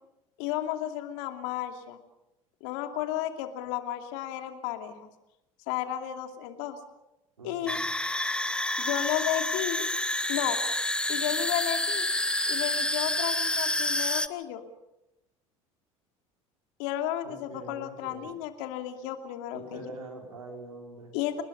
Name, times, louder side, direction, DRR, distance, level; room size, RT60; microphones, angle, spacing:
voice 1, 0.4-2.0 2.6-5.1 5.7-6.8 7.4-7.8 8.8-9.9 10.3-10.6 11.1-12.1 12.4-14.6 16.8-19.9 21.1-21.4, left 12 dB, 65° left, 6 dB, 2.6 m, -33 dB
voice 2, 7.4-7.9 17.2-18.3 19.5-21.1, right 2 dB, 85° right, 1 dB, 4.8 m, -44 dB
sound 1, 7.7-14.3, left 1 dB, 5° left, 1.1 m, -28 dB
30.0 x 20.5 x 5.4 m, 0.92 s
figure-of-eight pair, 65°, 18 cm